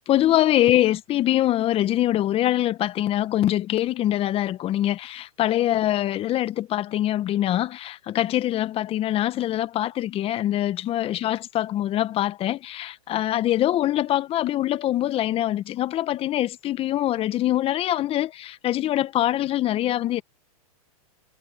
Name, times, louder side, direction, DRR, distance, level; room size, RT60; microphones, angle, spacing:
voice 1, 0.1-20.2, left 13 dB, 30° left, 1.5 m, -24 dB
hypercardioid pair, 110°, 19 cm